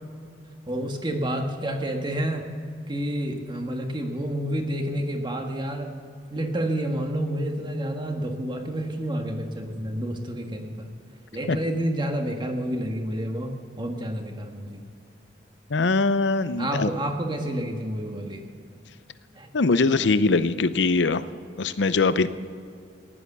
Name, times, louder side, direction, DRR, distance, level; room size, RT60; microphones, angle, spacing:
voice 1, 0.7-2.5 2.9-5.9 6.3-10.9 11.3-13.5 13.8-14.8 16.6-18.4 19.3-19.5, right 1 dB, 25° right, 3 dB, 1.6 m, -29 dB
voice 2, 15.7-16.9 19.5-21.2 21.6-22.3, left 3 dB, 75° left, 13 dB, 0.6 m, -22 dB
15.5 x 11.0 x 6.8 m, 2.3 s
head